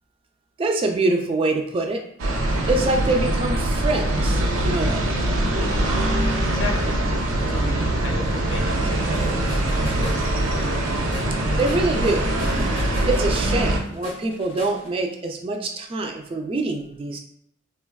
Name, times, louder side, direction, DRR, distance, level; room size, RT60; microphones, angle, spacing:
voice 1, 0.6-2.0 2.7-5.1 11.6-12.3 13.1-17.2, right 2 dB, 30° right, 3 dB, 0.3 m, -24 dB
sound 1, 2.2-13.8, right 1 dB, 90° right, 0.5 m, -23 dB
voice 2, 6.4-7.0 7.4-9.5 10.0-10.7, left 3 dB, 75° left, 0 dB, 0.6 m, -35 dB
sound 2, 8.7-14.9, left 3 dB, 25° left, 0.6 m, -39 dB
3.3 x 2.2 x 2.2 m, 0.73 s
head